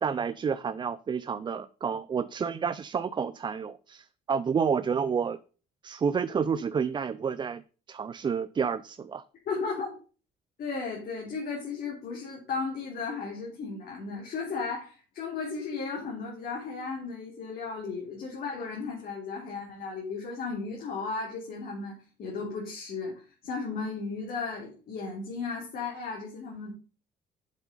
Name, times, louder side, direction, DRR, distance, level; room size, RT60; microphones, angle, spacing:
voice 1, 0.0-5.4 5.8-7.6 7.9-9.2, right 6 dB, 25° right, 14 dB, 0.4 m, -29 dB
voice 2, 9.4-9.9 10.6-26.7, left 4 dB, 60° left, -2 dB, 3.3 m, -35 dB
7.6 x 7.4 x 5.3 m, 0.36 s
cardioid pair, 110°, 17 cm